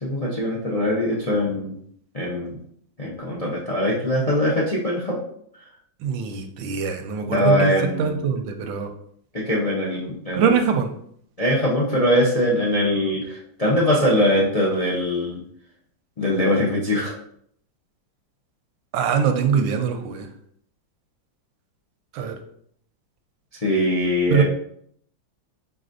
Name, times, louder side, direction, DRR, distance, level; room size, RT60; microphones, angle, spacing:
voice 1, 0.0-1.7 2.1-2.6 3.0-5.2 7.3-8.2 9.3-10.5 11.4-15.4 16.2-17.1 23.6-24.4, left 1 dB, 45° left, -4 dB, 0.4 m, -22 dB
voice 2, 6.0-7.7 8.0-8.9 10.3-10.9 18.9-20.3 22.1-22.4 24.3-24.4, right 6 dB, 85° right, 6 dB, 1.4 m, -22 dB
4.9 x 4.2 x 2.6 m, 0.65 s
omnidirectional pair, 2.1 m